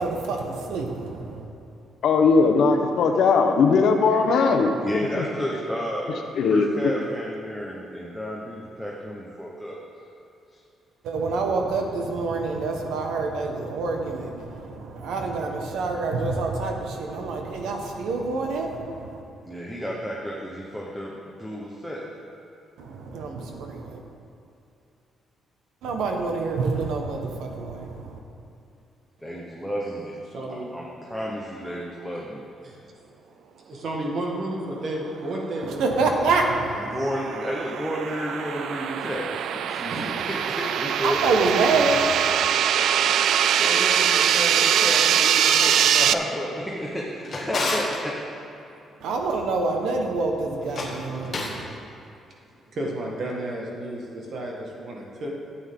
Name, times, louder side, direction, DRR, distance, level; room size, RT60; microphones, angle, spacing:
voice 1, 0.0-1.4 11.0-19.2 22.8-24.0 25.8-27.9 35.8-36.4 41.0-42.0 49.0-51.5, right 3 dB, 90° right, 2 dB, 1.3 m, -26 dB
voice 2, 2.0-5.2 6.4-6.7, left 4 dB, 60° left, 5 dB, 0.9 m, -19 dB
voice 3, 4.8-6.2 6.5-9.8 19.5-22.0 29.2-30.2 30.5-32.4 36.8-41.2 43.5-48.2, equal, ahead, -4 dB, 0.9 m, -32 dB
voice 4, 30.3-30.7 32.6-32.8 33.6-35.9 39.9-40.1 52.7-55.3, right 1 dB, 40° right, -2 dB, 1.7 m, -32 dB
sound 1, 35.7-46.1, right 9 dB, 65° right, 0.3 m, -23 dB
Drawer open or close, 46.8-48.0 50.6-51.6, left 2 dB, 35° left, 1.4 m, -31 dB
13.5 x 8.6 x 3.7 m, 2.7 s
cardioid pair, 170°, 0 cm